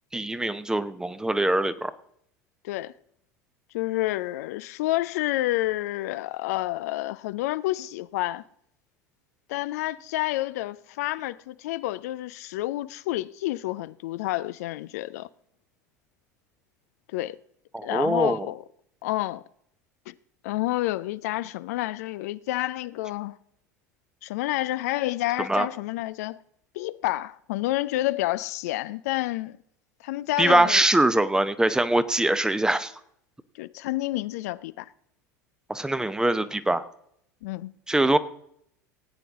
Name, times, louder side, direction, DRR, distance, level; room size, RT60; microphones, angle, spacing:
voice 1, 0.1-1.9 17.7-18.5 25.5-25.7 30.4-32.9 35.7-36.8 37.9-38.2, right 1 dB, 5° right, 0.8 m, -23 dB
voice 2, 3.7-8.4 9.5-15.3 17.1-17.4 17.8-18.6 19.0-19.4 20.1-20.2 20.4-23.4 24.2-26.4 26.7-29.6 30.0-30.8 33.6-34.9 37.4-37.7, left 17 dB, 60° left, 0.4 m, -29 dB
17.5 x 9.2 x 3.6 m
figure-of-eight pair, 75°, 9 cm